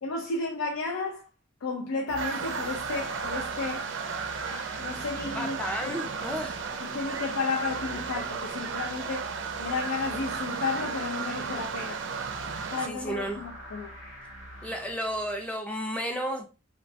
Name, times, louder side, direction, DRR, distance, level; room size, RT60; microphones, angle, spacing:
voice 1, 0.0-1.3 1.6-3.8 4.5-6.0 6.8-9.3 9.6-12.0 12.7-13.9, left 4 dB, 85° left, 0.4 m, -33 dB
sound 1, 2.1-15.6, equal, 60° left, 0.8 m, -45 dB
sound 2, 2.2-12.9, right 6 dB, 60° right, 0.4 m, -34 dB
voice 2, 5.4-6.6 12.8-13.4 14.6-16.5, equal, 5° left, 0.4 m, -32 dB
3.0 x 2.1 x 2.6 m
head